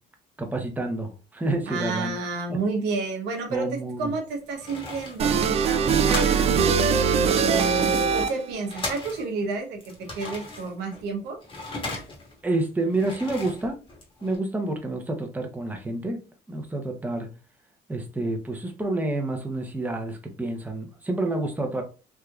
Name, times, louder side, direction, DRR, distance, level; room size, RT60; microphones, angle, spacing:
voice 1, 0.4-2.2 2.5-2.6 3.5-4.1 12.4-13.8 14.2-16.2 16.5-17.3 17.9-21.8, right 2 dB, 10° right, 3 dB, 0.7 m, -28 dB
voice 2, 1.7-6.9 7.4-11.4, right 4 dB, 90° right, 3 dB, 0.9 m, -30 dB
sound 1, 4.0-6.6 6.9-7.0 7.2-9.5 9.8-12.4 12.8-14.4, left 2 dB, 30° left, 1.2 m, -37 dB
sound 2, 5.2-8.6, right 6 dB, 40° right, 0.4 m, -22 dB
3.5 x 2.8 x 2.3 m, 0.33 s
cardioid pair, 110°, 17 cm